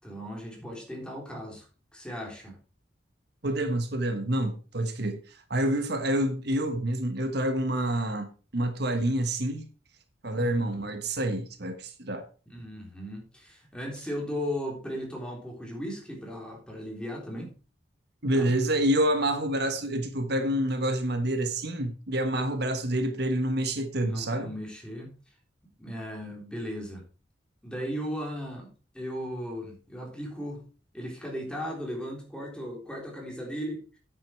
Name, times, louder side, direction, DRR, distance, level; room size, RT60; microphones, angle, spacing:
voice 1, 0.0-1.7 1.9-2.6 10.3-10.6 12.5-17.5 18.3-18.5 24.0-25.2 25.8-27.0 27.6-28.7 28.9-30.6 30.9-34.0, equal, 5° left, 3.7 m, -36 dB
voice 2, 3.4-9.6 10.2-12.2 18.2-24.5, right 1 dB, 60° right, 1.3 m, -28 dB
9.5 x 8.6 x 4.5 m
head